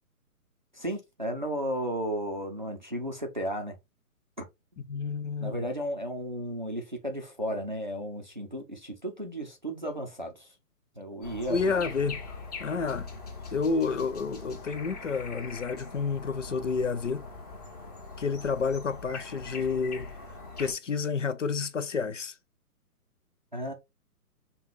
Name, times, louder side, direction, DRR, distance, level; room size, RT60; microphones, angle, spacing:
voice 1, 0.7-3.8 4.7-4.8 5.4-10.5 11.0-11.7 23.5-23.7, equal, 30° right, 0.5 m, -34 dB
voice 2, 4.9-5.6 11.5-12.2 12.6-13.1 13.5-17.3 18.2-20.1 20.6-22.4, left 5 dB, 55° left, 0.6 m, -30 dB
sound 1, 11.2-20.7, left 4 dB, 25° left, 1.1 m, -42 dB
5.5 x 2.3 x 3.1 m
hypercardioid pair, 180°, 46 cm